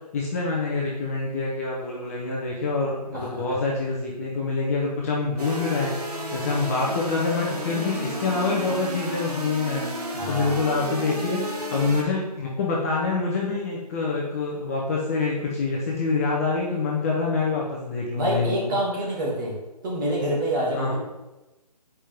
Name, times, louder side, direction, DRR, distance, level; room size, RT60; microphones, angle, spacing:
voice 1, 0.1-11.4 11.7-18.7 20.7-21.0, left 3 dB, 20° left, -4 dB, 0.9 m, -26 dB
sound 1, 5.4-12.0, equal, 70° right, 2.0 m, -32 dB
voice 2, 10.2-10.6 18.1-19.6 19.8-21.0, right 1 dB, 30° right, -5 dB, 2.3 m, -26 dB
8.4 x 5.1 x 3.6 m, 1.0 s
figure-of-eight pair, 155°, 21 cm